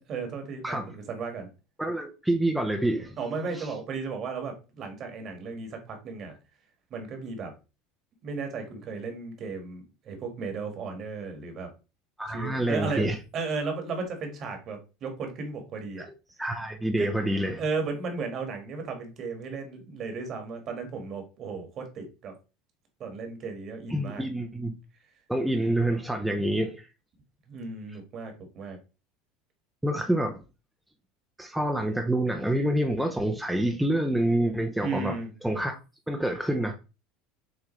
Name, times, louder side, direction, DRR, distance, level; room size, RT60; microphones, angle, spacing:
voice 1, 0.1-1.5 3.2-6.3 6.9-7.5 8.2-11.7 12.3-13.1 13.3-16.1 17.0-17.1 17.6-22.3 23.0-24.2 27.5-28.8 34.8-35.3, right 4 dB, 45° right, 1.6 m, -35 dB
voice 2, 0.6-1.0 1.8-3.2 3.5-3.7 12.2-13.2 16.4-17.6 23.9-24.7 25.3-26.9 29.8-30.4 31.4-35.2 35.4-35.7 36.1-36.7, right 1 dB, 5° right, 0.6 m, -27 dB
6.4 x 2.4 x 3.1 m
supercardioid pair, 105°, 0 cm